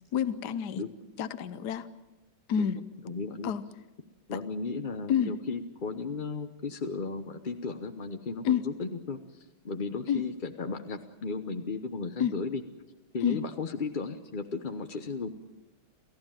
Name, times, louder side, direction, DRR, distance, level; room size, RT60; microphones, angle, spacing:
voice 1, 0.1-0.8 1.2-1.9 2.5-2.8 3.4-3.6 5.1-5.3 8.4-8.6 10.1-10.2 12.2-12.3 13.2-13.4, left 8 dB, 60° left, 13 dB, 1.4 m, -28 dB
voice 2, 3.0-3.5 4.3-12.6 13.1-15.3, left 4 dB, 40° left, 7 dB, 0.7 m, -35 dB
29.0 x 15.0 x 9.1 m, 1.1 s
omnidirectional pair, 2.2 m